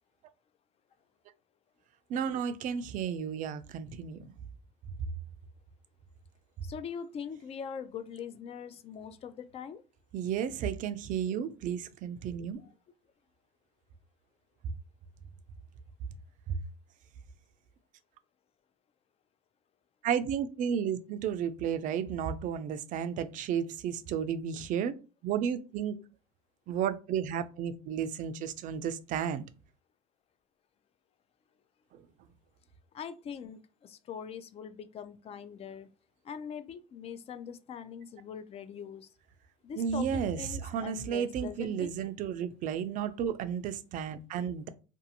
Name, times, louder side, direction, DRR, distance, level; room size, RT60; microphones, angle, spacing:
voice 1, 2.1-4.3 10.1-12.6 16.5-16.6 20.0-24.9 25.2-26.0 26.7-29.4 31.9-32.1 39.8-44.7, right 8 dB, 55° right, 0.4 m, -33 dB
voice 2, 6.6-9.8 32.9-35.9 36.2-39.1 39.6-40.1 40.4-41.9, left 7 dB, 40° left, 0.4 m, -42 dB
2.6 x 2.4 x 2.7 m
supercardioid pair, 90°, 16 cm